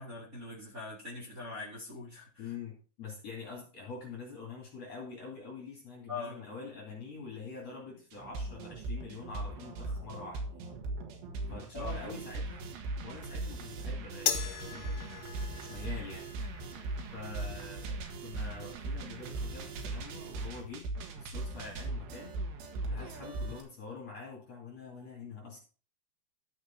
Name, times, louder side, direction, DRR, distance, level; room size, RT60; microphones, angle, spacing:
voice 1, 0.0-2.5 6.1-6.4 11.7-12.2, left 3 dB, 20° right, -7 dB, 3.7 m, -42 dB
voice 2, 2.4-10.4 11.5-12.7 13.0-16.3 17.1-20.9 21.1-22.3 22.9-25.6, left 4 dB, 45° left, -2 dB, 3.3 m, -45 dB
sound 1, 8.1-23.6, right 2 dB, 85° right, 3.8 m, -39 dB
sound 2, 14.3-20.8, left 10 dB, 70° left, 2.7 m, -41 dB
13.0 x 6.6 x 4.4 m, 0.37 s
omnidirectional pair, 4.8 m